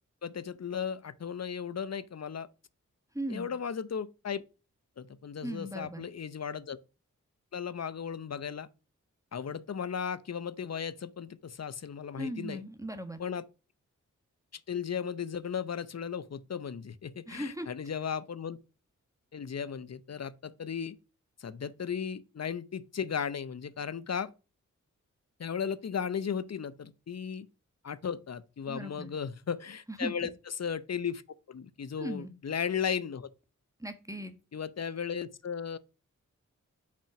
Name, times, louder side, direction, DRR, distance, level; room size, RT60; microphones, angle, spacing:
voice 1, 0.2-2.5 3.3-4.4 5.0-6.8 7.5-8.7 9.3-12.6 13.2-13.5 14.5-18.6 19.3-21.0 21.4-24.3 25.4-27.5 27.8-31.2 31.5-33.3 34.5-35.8, left 7 dB, 55° left, 0.7 m, -36 dB
voice 2, 3.1-3.5 5.4-6.1 12.2-13.2 17.3-17.7 28.7-29.1 29.9-30.3 32.0-32.3 33.8-34.3, right 1 dB, 10° right, 1.2 m, -38 dB
6.1 x 4.4 x 5.9 m
cardioid pair, 45°, 32 cm